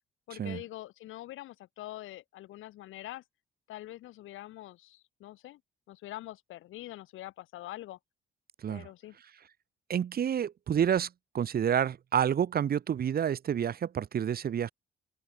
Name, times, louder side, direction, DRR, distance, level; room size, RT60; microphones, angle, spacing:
voice 1, 0.3-3.2 3.7-5.6 5.9-8.0 8.7-9.2, left 15 dB, 85° left, 3.2 m, -44 dB
voice 2, 9.9-11.1 11.3-14.7, right 9 dB, 50° right, 1.0 m, -29 dB
open air
cardioid pair, 90°, 20 cm